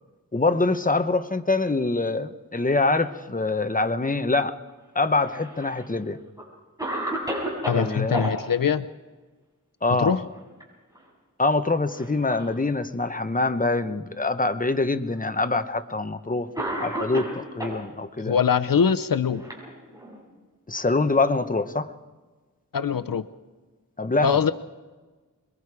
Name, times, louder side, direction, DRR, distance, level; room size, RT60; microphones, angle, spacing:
voice 1, 0.3-4.6 4.9-6.2 7.7-8.2 9.8-10.2 11.4-16.5 16.8-18.4 20.7-21.9 24.0-24.4, left 3 dB, 25° left, 9 dB, 1.0 m, -24 dB
Cough, 5.0-5.9 6.4-6.5 6.8-8.3 10.2-10.6 11.0-11.1 11.9-12.6 13.4-13.5 14.5-14.6 15.7-15.9 16.6-17.8 18.8-20.2, right 1 dB, 10° right, 7.0 m, -32 dB
voice 2, 7.7-8.8 10.0-10.2 18.2-19.5 22.7-23.2 24.2-24.5, left 7 dB, 75° left, 11 dB, 0.7 m, -22 dB
25.5 x 22.0 x 4.9 m, 1.3 s
wide cardioid pair, 65°, 34 cm